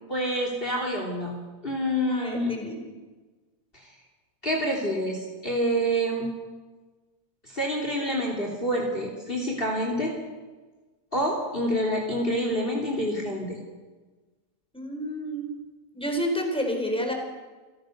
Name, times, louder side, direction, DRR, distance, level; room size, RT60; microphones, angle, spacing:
voice 1, 0.1-1.3 1.6-2.5 3.7-3.9 4.4-6.3 7.4-10.2 11.1-13.6, equal, 35° left, 0 dB, 3.5 m, -27 dB
voice 2, 2.1-2.8 14.7-15.6 15.9-17.1, equal, 5° left, 2 dB, 4.7 m, -29 dB
28.5 x 17.5 x 6.6 m, 1.3 s
omnidirectional pair, 1.6 m